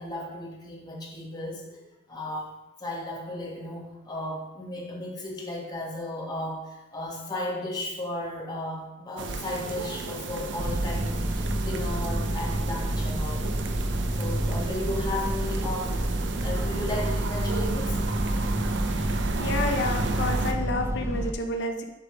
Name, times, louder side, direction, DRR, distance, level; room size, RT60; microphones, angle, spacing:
voice 1, 0.0-1.8 2.1-2.5 2.8-13.4 14.1-16.0 16.4-18.0, left 1 dB, 20° left, -3 dB, 1.5 m, -34 dB
sound 1, 9.2-20.5, right 3 dB, 70° right, 0.6 m, -33 dB
sound 2, 10.6-21.3, right 1 dB, 15° right, 0.4 m, -29 dB
voice 2, 19.4-21.8, left 2 dB, 65° left, 5 dB, 0.8 m, -29 dB
9.9 x 3.5 x 4.5 m, 1.0 s
head